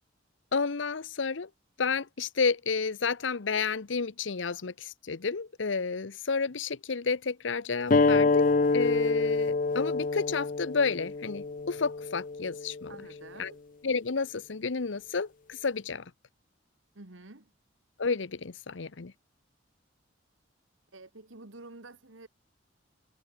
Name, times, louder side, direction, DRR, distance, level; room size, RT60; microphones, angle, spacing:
voice 1, 0.5-1.5 1.8-12.9 13.4-13.5 13.8-16.0 18.0-19.1, left 5 dB, 75° left, 0.8 m, -31 dB
sound 1, 7.9-13.0, left 3 dB, 45° left, 0.5 m, -27 dB
voice 2, 12.9-13.6 17.0-17.5 20.9-22.3, right 2 dB, 85° right, 1.9 m, -49 dB
head